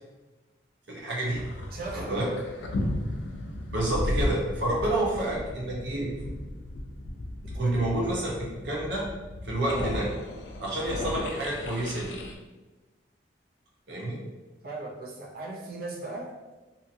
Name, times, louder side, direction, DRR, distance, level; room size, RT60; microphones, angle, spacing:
voice 1, 0.9-1.4 1.9-2.3 3.7-6.1 7.5-8.3 8.6-9.1 9.4-10.1 10.6-12.2 13.9-14.2, right 1 dB, 75° right, -4 dB, 0.9 m, -29 dB
sound 1, 1.2-12.3, left 1 dB, 75° left, 0.4 m, -35 dB
voice 2, 1.7-2.3 7.5-7.7 8.0-8.1 14.6-16.3, right 2 dB, 55° right, -3 dB, 0.5 m, -37 dB
2.7 x 2.7 x 2.6 m, 1.2 s
head